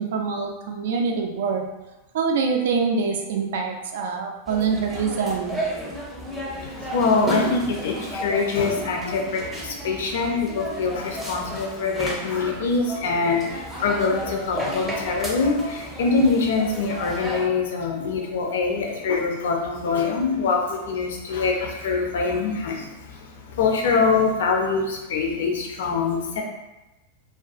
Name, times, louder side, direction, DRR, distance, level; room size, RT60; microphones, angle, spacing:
voice 1, 0.0-1.6 2.1-5.6, right 5 dB, 55° right, 2 dB, 0.3 m, -25 dB
sound 1, 4.5-17.5, equal, 10° right, 0.6 m, -33 dB
voice 2, 6.6-26.4, left 4 dB, 60° left, 1 dB, 0.4 m, -24 dB
2.4 x 2.3 x 2.4 m, 1.0 s
figure-of-eight pair, 90°, 0 cm